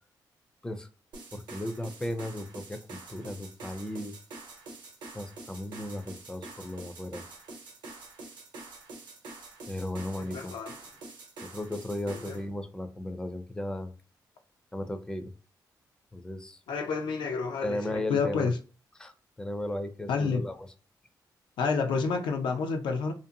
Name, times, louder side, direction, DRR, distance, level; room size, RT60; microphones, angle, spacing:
sound 1, 1.1-12.4, right 3 dB, 85° right, 0.8 m, -46 dB
voice 1, 1.3-4.1 5.1-7.2 9.7-10.5 11.4-13.9 14.7-15.3 16.1-16.6 17.6-18.5 19.0-20.7, left 1 dB, 10° left, 0.3 m, -35 dB
voice 2, 10.2-10.7 12.1-12.4 16.7-18.6 20.1-20.4 21.6-23.1, left 5 dB, 90° left, 0.4 m, -29 dB
2.6 x 2.4 x 2.6 m
cardioid pair, 135°, 8 cm